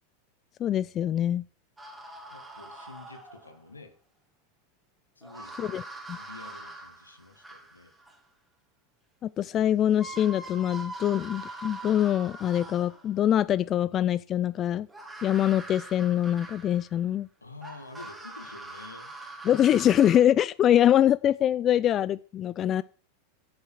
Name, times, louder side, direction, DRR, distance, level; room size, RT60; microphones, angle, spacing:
voice 1, 0.6-1.4 5.6-5.8 6.1-6.2 9.2-14.9 15.2-17.3 19.4-22.8, left 11 dB, 35° left, 18 dB, 0.4 m, -24 dB
sound 1, 1.8-3.6 5.2-8.2 9.5-9.6 9.9-13.2 14.9-17.0 17.6-20.2, right 2 dB, 5° right, 2.8 m, -43 dB
voice 2, 2.3-3.9 5.2-5.8 6.2-7.9 17.4-19.1, left 3 dB, 90° left, 9 dB, 1.9 m, -48 dB
9.7 x 6.9 x 6.4 m, 0.41 s
figure-of-eight pair, 90°, 0 cm